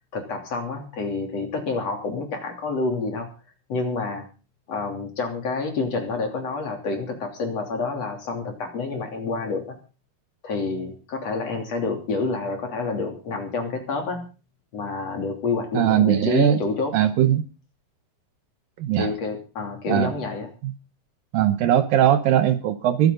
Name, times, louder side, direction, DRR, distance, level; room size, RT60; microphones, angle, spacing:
voice 1, 0.1-3.3 3.7-4.3 4.7-9.8 10.4-14.3 14.7-16.9 19.0-20.5, left 3 dB, 45° left, 4 dB, 3.8 m, -28 dB
voice 2, 15.7-16.6 16.9-17.4 18.8-19.1 19.9-20.1 20.6-20.7 21.3-23.1, right 11 dB, 70° right, 11 dB, 2.5 m, -20 dB
23.0 x 9.6 x 3.9 m, 0.35 s
omnidirectional pair, 4.5 m